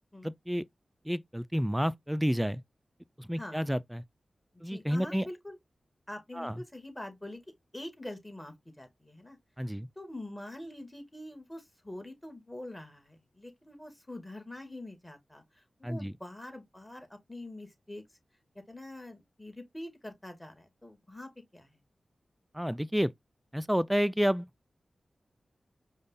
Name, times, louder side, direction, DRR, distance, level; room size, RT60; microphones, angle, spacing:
voice 1, 0.2-0.6 1.1-2.6 3.2-4.0 4.6-5.3 6.4-6.6 9.6-9.9 15.8-16.1 22.5-23.1 23.5-24.5, equal, 5° right, 0.4 m, -30 dB
voice 2, 4.5-5.6 6.1-9.4 10.0-18.0 18.7-21.8, left 1 dB, 15° left, 1.8 m, -45 dB
5.1 x 2.3 x 4.0 m
cardioid pair, 45°, 0 cm